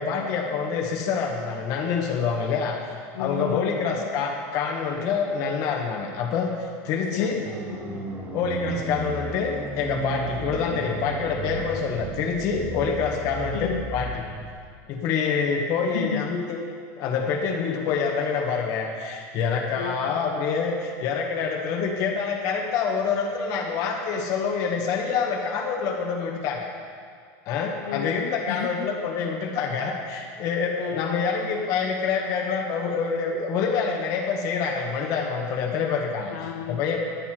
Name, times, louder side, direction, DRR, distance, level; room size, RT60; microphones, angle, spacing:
voice 1, 0.0-2.9 3.2-7.4 8.3-14.2 14.9-16.6 17.0-26.7 27.4-36.3 36.7-37.0, left 5 dB, 40° left, 0 dB, 1.6 m, -26 dB
voice 2, 3.1-4.1 6.9-8.1 13.5-13.9 15.8-16.2 19.7-20.2 27.9-28.9 30.8-31.2 36.3-37.0, left 10 dB, 80° left, 5 dB, 0.6 m, -34 dB
sound 1, 7.5-14.5, right 2 dB, 20° right, 1.0 m, -34 dB
11.0 x 9.3 x 4.6 m, 2.2 s
supercardioid pair, 165°, 9 cm